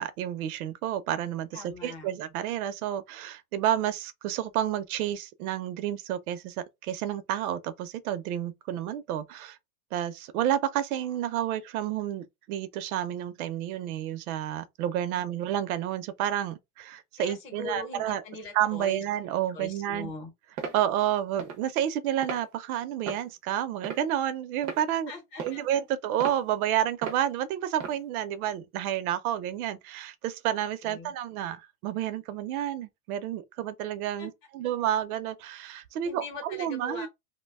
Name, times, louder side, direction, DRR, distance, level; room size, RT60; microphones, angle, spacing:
voice 1, 0.0-1.5 1.8-4.0 4.2-6.4 6.9-9.2 9.9-12.2 12.5-16.5 17.2-18.2 18.5-20.1 20.7-25.1 25.4-30.1 30.4-31.6 31.8-35.6 36.0-37.1, right 11 dB, 80° right, 0.6 m, -30 dB
voice 2, 1.5-2.1 15.1-15.2 17.2-19.0 19.5-20.3 25.1-25.7 30.5-31.1 34.2-34.3 36.0-37.1, left 3 dB, 30° left, 0.8 m, -41 dB
sound 1, 20.6-20.8 21.4-21.6 22.2-22.4 23.1-23.3 23.8-24.2 24.6-24.8 25.4-25.6 26.2-26.4 27.0-27.2 27.8-28.0, right 5 dB, 30° right, 0.4 m, -36 dB
2.9 x 2.2 x 3.3 m
supercardioid pair, 180°, 43 cm